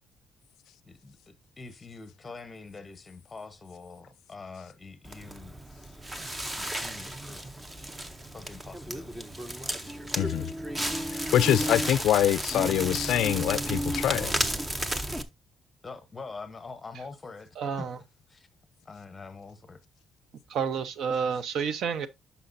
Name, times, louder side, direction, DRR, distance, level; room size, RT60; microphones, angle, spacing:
voice 1, 0.9-5.6 6.5-7.6 8.3-9.3 15.8-17.5 17.8-17.9 18.3-18.5 18.8-19.8, left 4 dB, 20° left, 0.8 m, -44 dB
Crackle, 5.0-15.2, right 1 dB, 10° right, 0.6 m, -33 dB
voice 2, 10.2-10.5 11.1-14.3, left 12 dB, 75° left, 0.3 m, -25 dB
voice 3, 17.6-18.0 20.5-22.1, right 6 dB, 60° right, 0.7 m, -29 dB
9.8 x 5.7 x 2.6 m
cardioid pair, 175°, 0 cm